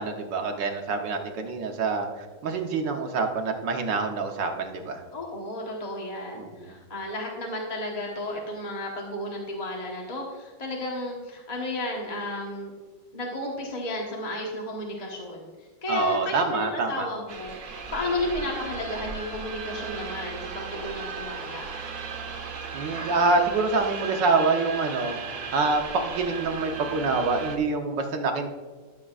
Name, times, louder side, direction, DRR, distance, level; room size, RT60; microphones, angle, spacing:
voice 1, 0.0-5.0 6.4-6.7 15.9-17.1 22.7-25.2 25.5-28.5, right 3 dB, 75° right, 3 dB, 1.7 m, -26 dB
voice 2, 5.1-12.7 13.1-15.5 15.8-21.6, left 1 dB, 25° left, -1 dB, 1.1 m, -33 dB
sound 1, 17.3-27.6, right 5 dB, 55° right, 1.3 m, -36 dB
13.5 x 7.1 x 2.4 m, 1.4 s
omnidirectional pair, 2.0 m